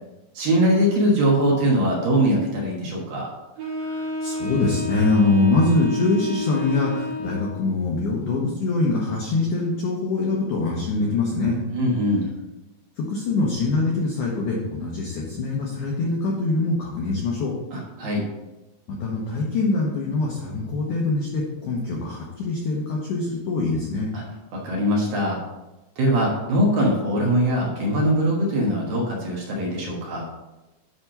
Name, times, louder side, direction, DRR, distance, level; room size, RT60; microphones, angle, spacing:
voice 1, 0.3-3.3 11.7-12.3 17.7-18.2 24.1-24.2 24.5-25.4 26.0-30.3, equal, 65° right, -2 dB, 2.6 m, -22 dB
Wind instrument woodwind instrument, 3.6-7.7, left 1 dB, 85° right, 4.7 m, -29 dB
voice 2, 3.8-11.6 13.0-17.5 18.9-24.1, left 3 dB, 85° left, -3 dB, 1.8 m, -24 dB
10.0 x 3.6 x 5.8 m, 1.0 s
omnidirectional pair, 5.2 m